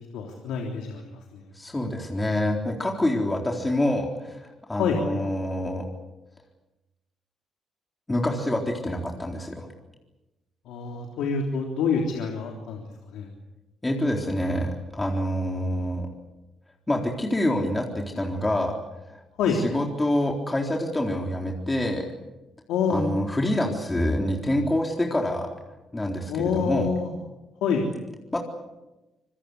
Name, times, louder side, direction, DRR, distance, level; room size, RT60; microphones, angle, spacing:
voice 1, 0.1-1.0 1.3-1.4 4.8-5.0 10.6-12.8 13.1-13.3 19.4-19.6 22.7-23.1 26.3-27.1 27.6-27.8, left 6 dB, 90° left, 1 dB, 3.4 m, -26 dB
voice 2, 1.5-5.9 8.1-9.7 13.8-16.1 16.9-18.7 19.1-19.2 19.5-22.1 22.9-25.5 25.9-26.9 28.3-28.4, left 1 dB, 15° left, 0 dB, 3.9 m, -26 dB
26.0 x 21.5 x 8.4 m, 1.0 s
cardioid pair, 90°, 0 cm